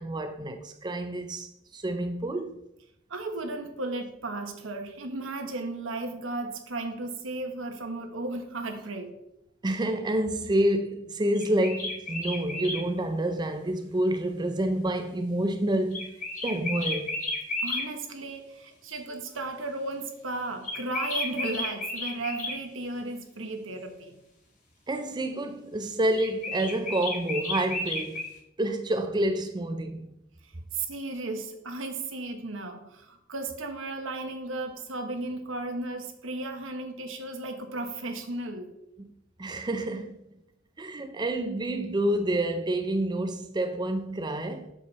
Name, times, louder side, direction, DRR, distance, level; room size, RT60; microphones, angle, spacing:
voice 1, 0.0-2.6 9.6-16.1 16.4-17.1 24.9-28.2 28.6-30.1 39.0-39.1 39.4-40.2 40.8-44.7, right 1 dB, 20° right, 0.5 m, -28 dB
voice 2, 3.1-9.2 17.6-24.1 30.7-38.7, right 2 dB, 80° right, 1.3 m, -35 dB
sound 1, 11.3-12.8 15.9-17.9 20.6-22.6 26.1-28.3, left 2 dB, 40° left, 2.0 m, -32 dB
7.4 x 6.4 x 4.2 m
head